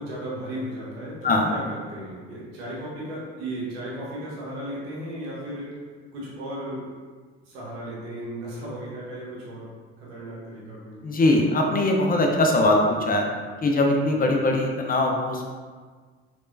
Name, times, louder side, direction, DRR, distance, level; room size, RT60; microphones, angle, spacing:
voice 1, 0.0-5.7 6.1-6.8 7.4-9.7 10.0-11.0, right 1 dB, 85° right, -6 dB, 1.1 m, -35 dB
voice 2, 11.0-13.3 13.6-15.4, left 2 dB, 30° left, 1 dB, 0.6 m, -21 dB
3.4 x 3.3 x 2.6 m, 1.5 s
hypercardioid pair, 60°, 30 cm